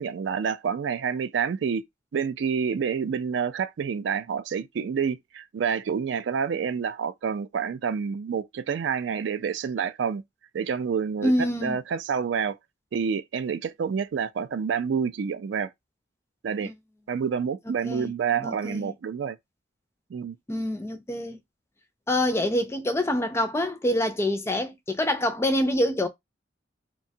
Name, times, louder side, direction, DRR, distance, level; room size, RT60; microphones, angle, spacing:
voice 1, 0.0-1.8 2.1-10.2 10.5-11.3 11.6-12.6 12.9-15.7 16.4-16.7 17.1-19.4 20.1-20.4, right 6 dB, 70° right, 0.3 m, -28 dB
voice 2, 11.2-11.8 16.6-16.7 17.8-18.1 18.4-18.9 20.5-21.4 22.1-26.1, left 1 dB, 15° left, 0.4 m, -26 dB
2.7 x 2.2 x 2.6 m
head